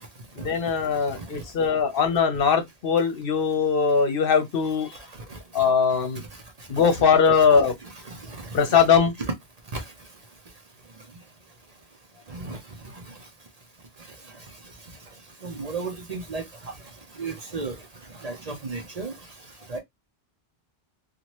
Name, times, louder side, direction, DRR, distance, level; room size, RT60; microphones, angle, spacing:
voice 1, 0.4-4.9 5.5-6.2 6.7-7.7 8.5-9.1, left 6 dB, 65° left, 0.9 m, -21 dB
voice 2, 7.6-8.9 9.2-9.3 9.7-9.8 12.3-12.6 12.9-13.0 15.4-16.7 17.1-17.8 18.1-19.2 19.7-19.8, right 3 dB, 45° right, 0.7 m, -34 dB
2.7 x 2.4 x 2.9 m
omnidirectional pair, 1.0 m